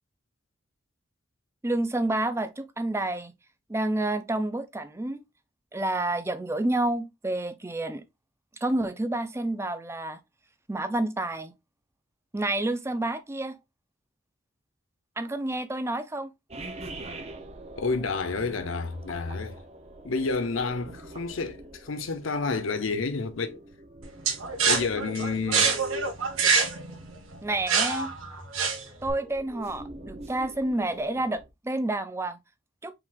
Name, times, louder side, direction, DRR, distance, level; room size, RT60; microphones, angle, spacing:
voice 1, 1.6-3.3 3.7-5.2 5.7-8.0 8.6-10.2 10.7-11.5 12.3-13.6 15.2-16.3 27.4-28.1 29.0-32.4 32.8-32.9, right 2 dB, 15° right, 0.5 m, -29 dB
sound 1, 16.5-31.5, right 1 dB, 30° right, 0.8 m, -44 dB
voice 2, 17.8-19.6 20.0-23.6 24.7-25.7, left 4 dB, 75° left, 0.7 m, -30 dB
sound 2, 24.2-29.1, right 5 dB, 85° right, 1.5 m, -25 dB
4.8 x 3.7 x 2.5 m
head